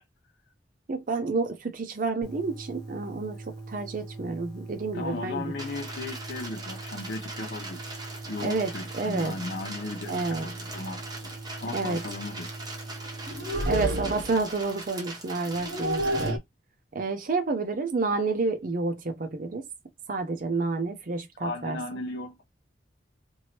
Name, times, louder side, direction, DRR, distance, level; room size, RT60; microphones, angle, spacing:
voice 1, 0.9-5.5 8.4-9.3 10.1-10.5 11.7-12.0 13.7-16.4 16.9-19.6 20.1-22.0, right 3 dB, 45° right, 0.5 m, -29 dB
sound 1, 2.2-13.6, right 2 dB, 5° left, 1.1 m, -42 dB
voice 2, 4.9-7.9 8.3-11.3 11.6-12.5 21.4-22.4, left 2 dB, 60° left, 0.5 m, -36 dB
sound 2, 5.6-16.3, right 2 dB, 20° right, 0.8 m, -41 dB
sound 3, 8.3-8.5 9.7-9.8 10.2-10.4 10.7-10.9 13.2-14.5 15.5-16.4, right 1 dB, 85° right, 0.8 m, -30 dB
3.0 x 2.6 x 2.9 m
head